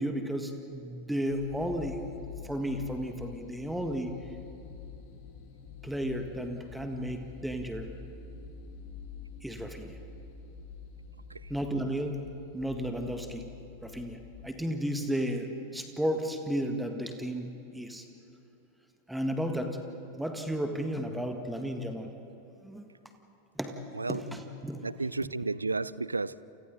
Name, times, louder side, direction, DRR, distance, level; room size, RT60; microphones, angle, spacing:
voice 1, 0.0-2.0 2.4-4.3 5.8-7.9 9.4-10.0 11.5-12.2 12.5-13.5 13.8-18.1 19.1-19.8 20.2-22.1 22.6-22.9 23.6-23.8 24.1-24.9 25.2-25.3, equal, 5° right, 5 dB, 1.8 m, -33 dB
sound 1, 1.3-14.5, left 5 dB, 45° left, 2.4 m, -47 dB
voice 2, 24.8-26.4, right 3 dB, 80° right, 19 dB, 0.4 m, -32 dB
29.5 x 28.5 x 4.1 m, 2.8 s
figure-of-eight pair, 90°, 0 cm